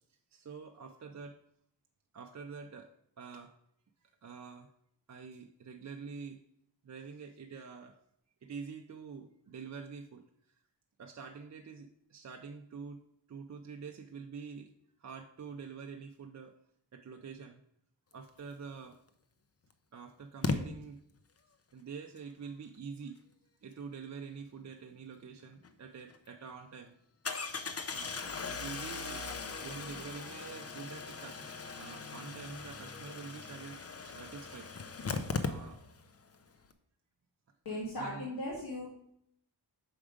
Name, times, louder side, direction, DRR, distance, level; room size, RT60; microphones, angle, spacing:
voice 1, 0.3-1.4 2.1-2.9 3.2-3.5 4.0-4.7 5.1-6.4 6.8-8.0 8.4-10.2 11.0-13.0 13.3-14.7 15.0-16.6 16.9-17.6 18.1-18.9 19.9-21.0 21.7-23.2 23.6-26.9 27.9-28.2 28.5-29.2 29.6-34.7 35.4-35.8 38.0-38.3, right 5 dB, 40° right, 4 dB, 0.5 m, -46 dB
Engine starting, 18.9-19.0 20.4-20.6 25.6-25.7 26.1-26.2 27.3-36.1 36.3-36.4 36.6-36.7, left 4 dB, 35° left, 0.6 m, -39 dB
voice 2, 37.7-38.9, left 1 dB, 60° left, -5 dB, 2.0 m, -37 dB
6.2 x 4.8 x 5.0 m, 0.71 s
wide cardioid pair, 105°, 42 cm